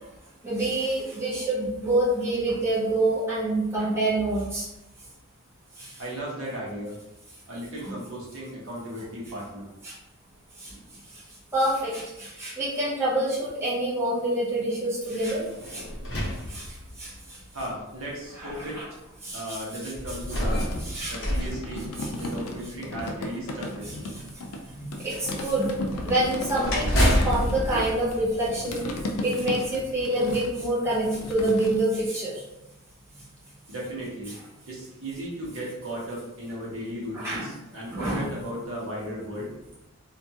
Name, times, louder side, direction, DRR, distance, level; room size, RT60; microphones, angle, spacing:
voice 1, 0.4-4.7 5.8-5.9 7.9-8.0 9.8-9.9 10.6-10.8 11.5-15.8 16.5-17.1 18.4-18.8 19.2-19.6 20.9-21.1 24.8-25.7 26.0-28.8 29.2-32.4 37.1-37.4 37.9-38.3, right 1 dB, 10° right, -9 dB, 0.7 m, -27 dB
voice 2, 6.0-7.0 7.5-9.7 17.5-18.8 19.3-20.6 21.1-21.8 22.2-24.1 33.7-34.4 34.7-39.5, equal, 70° right, -4 dB, 0.9 m, -36 dB
sound 1, 15.3-17.2 18.0-18.1 19.9-22.5 25.9-29.0, equal, 55° left, 0.7 m, -28 dB
sound 2, 20.5-24.6 24.9-31.8, left 1 dB, 85° left, 0.4 m, -35 dB
2.5 x 2.2 x 2.7 m, 0.94 s
head